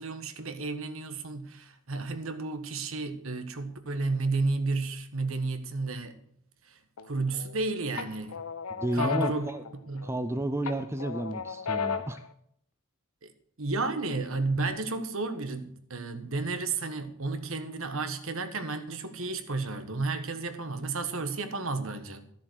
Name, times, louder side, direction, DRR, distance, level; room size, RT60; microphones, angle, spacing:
voice 1, 0.0-6.2 6.6-8.4 8.9-9.5 9.9-10.1 13.2-13.3 13.6-22.3, right 3 dB, 70° right, 1.4 m, -32 dB
sound 1, 7.0-7.6 8.0-10.3 10.6-12.3, left 6 dB, 90° left, 0.9 m, -34 dB
voice 2, 8.7-9.6 10.0-12.2, right 1 dB, 10° right, 0.5 m, -32 dB
13.5 x 7.4 x 6.3 m
head